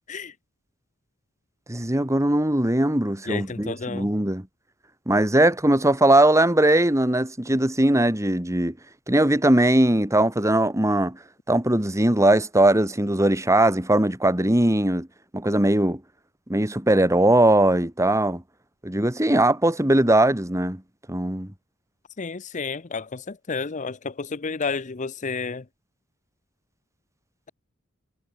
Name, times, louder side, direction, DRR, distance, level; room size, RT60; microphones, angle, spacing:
voice 1, 1.7-4.5 5.1-8.7 9.1-11.2 11.5-15.1 15.3-16.0 16.5-18.4 18.8-20.8 21.1-21.5, right 1 dB, 15° right, 2.1 m, -20 dB
voice 2, 3.3-4.1 22.2-25.6, left 4 dB, 35° left, 0.7 m, -31 dB
head